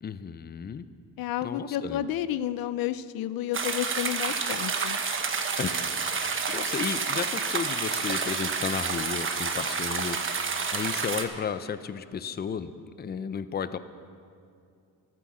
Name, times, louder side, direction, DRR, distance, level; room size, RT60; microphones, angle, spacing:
voice 1, 0.0-0.9 1.4-2.0 5.6-5.7 6.1-10.5 10.7-12.7 13.0-13.8, left 7 dB, 30° left, 13 dB, 0.5 m, -33 dB
voice 2, 1.2-5.0, left 12 dB, 80° left, 15 dB, 0.5 m, -31 dB
sound 1, 3.5-11.3, right 5 dB, 35° right, 1.1 m, -29 dB
12.5 x 9.1 x 7.3 m, 2.4 s
cardioid pair, 100°, 35 cm